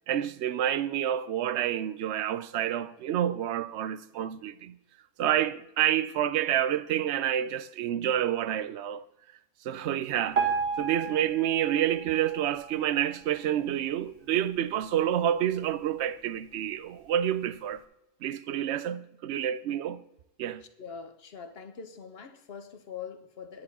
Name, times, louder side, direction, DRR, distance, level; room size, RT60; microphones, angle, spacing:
voice 1, 0.1-4.8 5.2-9.0 9.6-10.4 10.8-17.8 18.2-20.0 20.4-20.6, right 11 dB, 65° right, 0.7 m, -28 dB
Piano, 10.3-13.4 14.0-14.1 14.4-14.5 15.2-15.3 15.9-16.0, right 5 dB, 45° right, 1.8 m, -33 dB
voice 2, 20.8-23.6, left 6 dB, 50° left, 1.1 m, -43 dB
10.5 x 9.7 x 4.1 m
omnidirectional pair, 1.5 m